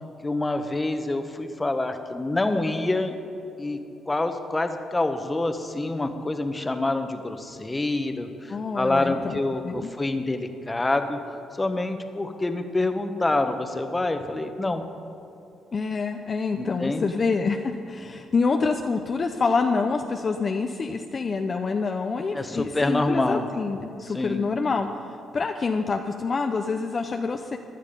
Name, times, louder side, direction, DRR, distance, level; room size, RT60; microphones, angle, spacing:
voice 1, 0.2-3.2 3.6-3.8 4.1-11.2 11.6-14.9 16.6-17.1 22.3-23.5 24.1-24.5, left 2 dB, 20° left, 7 dB, 1.1 m, -26 dB
voice 2, 8.5-9.4 9.6-9.9 15.7-24.9 25.3-27.6, left 4 dB, 40° left, 5 dB, 0.6 m, -26 dB
16.0 x 10.5 x 5.3 m, 2.8 s
cardioid pair, 90°, 0 cm